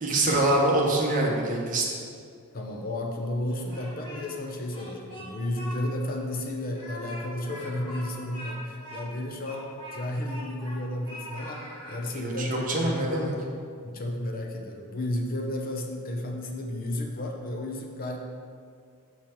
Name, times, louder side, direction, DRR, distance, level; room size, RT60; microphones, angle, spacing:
voice 1, 0.0-1.9 12.1-13.3, right 1 dB, 35° right, -1 dB, 1.0 m, -25 dB
voice 2, 2.5-9.7 9.9-11.6 11.9-13.1 13.8-18.2, left 1 dB, 40° left, 2 dB, 0.6 m, -32 dB
Speech, 3.5-4.4 4.7-5.8 6.1-6.2 6.7-10.8 11.0-12.0, equal, 25° left, 1.8 m, -42 dB
6.4 x 5.5 x 4.4 m, 2.2 s
head